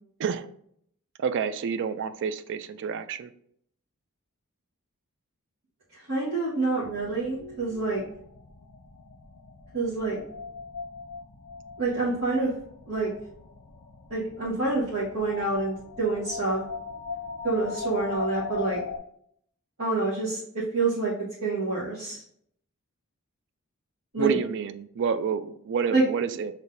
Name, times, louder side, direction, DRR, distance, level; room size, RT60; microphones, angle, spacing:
voice 1, 1.2-3.3 24.2-26.6, right 6 dB, 55° right, 12 dB, 0.3 m, -29 dB
voice 2, 5.9-8.0 9.7-10.2 11.8-12.5 12.9-13.1 14.1-16.6 17.4-18.8 19.8-21.1 21.4-22.2 24.1-24.4 25.9-26.0, right 3 dB, 75° right, -9 dB, 1.4 m, -27 dB
Synthetic rumble with rising tone, 6.8-19.0, left 5 dB, 65° left, 0.6 m, -40 dB
5.7 x 3.1 x 2.6 m, 0.67 s
head